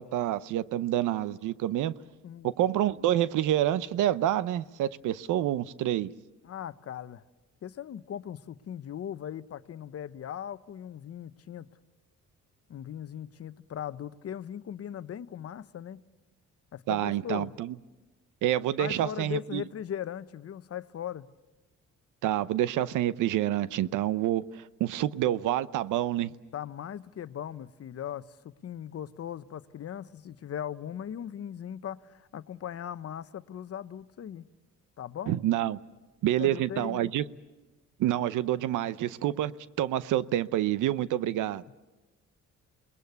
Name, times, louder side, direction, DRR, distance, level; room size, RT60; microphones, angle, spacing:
voice 1, 0.0-1.9 2.4-6.1 16.9-17.7 18.4-19.6 22.2-26.3 35.3-35.8 36.2-37.2 38.0-39.5 39.8-41.6, right 12 dB, 85° right, 0.8 m, -28 dB
voice 2, 6.4-7.2 7.6-11.7 12.7-16.0 16.7-17.5 18.8-21.3 26.5-28.4 28.6-34.5 35.0-35.4 36.4-37.1 41.7-41.8, left 9 dB, 50° left, 0.9 m, -39 dB
28.5 x 21.0 x 8.2 m
cardioid pair, 90°, 30 cm